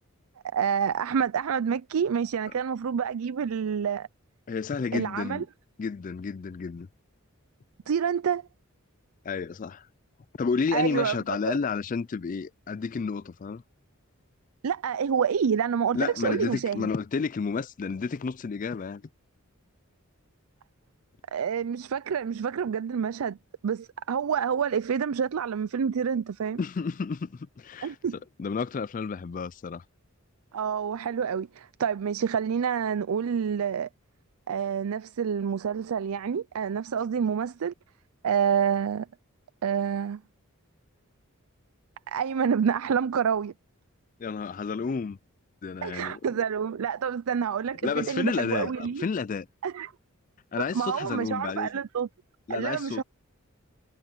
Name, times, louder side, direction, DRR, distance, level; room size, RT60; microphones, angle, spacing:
voice 1, 0.5-4.1 4.9-5.4 7.9-8.4 10.7-11.2 11.5-11.6 14.6-16.9 21.3-23.4 23.6-26.6 27.8-28.2 30.5-33.9 34.5-37.7 38.2-39.1 39.6-40.2 42.1-43.5 45.8-49.0 49.6-49.9 50.5-52.1 52.5-53.0, right 7 dB, 80° right, 0.4 m, -28 dB
voice 2, 4.5-5.5 5.8-6.9 9.3-9.9 10.4-13.6 15.9-19.0 26.6-28.0 28.4-29.8 44.2-45.2 45.6-46.2 47.8-49.5 50.5-51.7 52.5-53.0, left 5 dB, 35° left, 0.4 m, -31 dB
head